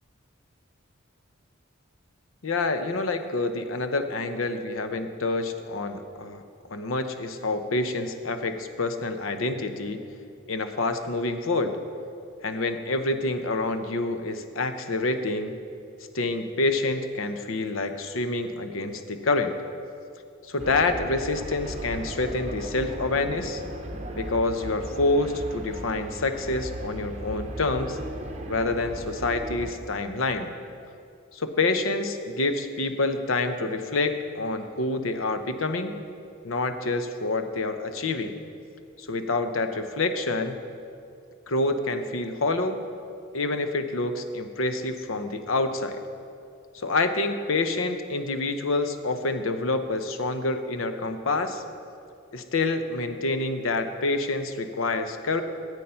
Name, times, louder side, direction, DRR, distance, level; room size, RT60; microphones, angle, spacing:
voice 1, 2.4-6.4 6.7-10.0 10.5-11.8 12.4-15.6 16.1-19.5 20.5-23.6 24.2-28.0 28.5-30.5 31.3-35.9 36.4-38.3 39.0-40.6 41.5-42.8 43.3-46.0 46.7-51.6 52.3-55.4, left 2 dB, 80° left, 8 dB, 0.8 m, -27 dB
sound 1, 20.6-29.7, right 1 dB, 35° right, 0.9 m, -37 dB
13.0 x 8.2 x 5.7 m, 2.5 s
head